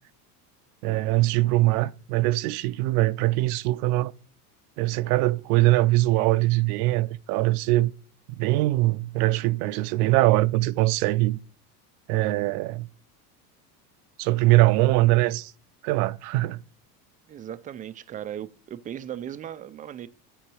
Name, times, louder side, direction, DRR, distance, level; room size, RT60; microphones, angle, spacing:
voice 1, 0.8-4.1 4.8-7.9 8.3-11.4 12.1-12.9 14.2-15.5 15.8-16.6, right 18 dB, 65° right, 0.6 m, -22 dB
voice 2, 17.3-20.1, right 10 dB, 20° right, 0.3 m, -37 dB
9.0 x 4.5 x 6.1 m
hypercardioid pair, 95°, 48 cm